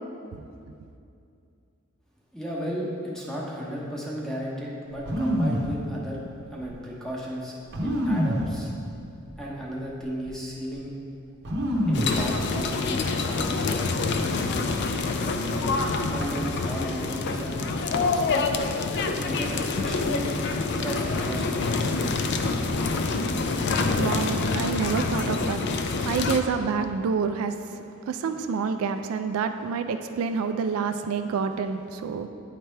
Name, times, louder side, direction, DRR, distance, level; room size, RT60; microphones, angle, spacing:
voice 1, 2.3-6.2 6.5-8.7 9.4-10.9 11.9-18.4 19.1-20.3 20.8-21.9, equal, ahead, -4 dB, 0.9 m, -35 dB
sound 1, 5.1-5.7 6.6-6.7 7.7-8.5 9.3-9.4 9.8-10.3 11.4-12.2 12.5-13.1, equal, 50° right, 0.8 m, -26 dB
sound 2, 11.9-26.4, left 3 dB, 50° left, 0.4 m, -26 dB
voice 2, 22.9-32.3, right 5 dB, 75° right, 9 dB, 0.3 m, -28 dB
8.8 x 3.3 x 4.4 m, 2.6 s
head